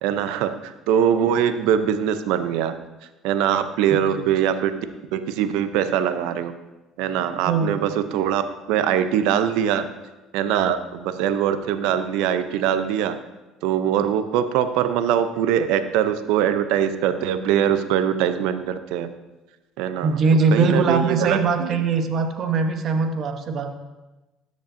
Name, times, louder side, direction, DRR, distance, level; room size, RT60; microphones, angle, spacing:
voice 1, 0.0-2.7 3.2-4.7 5.1-6.5 7.0-8.4 8.7-9.8 10.3-13.2 13.6-19.1 19.8-20.2 20.5-21.8, right 9 dB, 75° right, 10 dB, 0.5 m, -22 dB
voice 2, 7.4-7.8 20.0-23.7, right 4 dB, 55° right, 7 dB, 0.9 m, -21 dB
13.0 x 5.2 x 2.6 m, 1.1 s
supercardioid pair, 80°, 0 cm